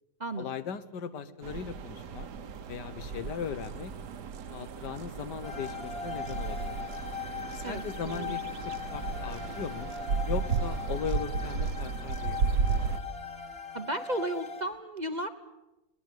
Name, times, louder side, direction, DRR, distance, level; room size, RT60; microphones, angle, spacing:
voice 1, 0.4-2.3 2.7-3.9 4.5-6.8 7.5-9.9 10.3-12.6, left 7 dB, 85° left, 13 dB, 1.7 m, -38 dB
sound 1, 1.4-13.0, right 5 dB, 75° right, 1.7 m, -34 dB
sound 2, 5.4-14.6, left 6 dB, 40° left, 1.4 m, -40 dB
voice 2, 7.6-8.3 13.7-15.3, right 1 dB, 35° right, 9 dB, 0.9 m, -34 dB
21.5 x 19.0 x 9.1 m, 0.96 s
omnidirectional pair, 1.8 m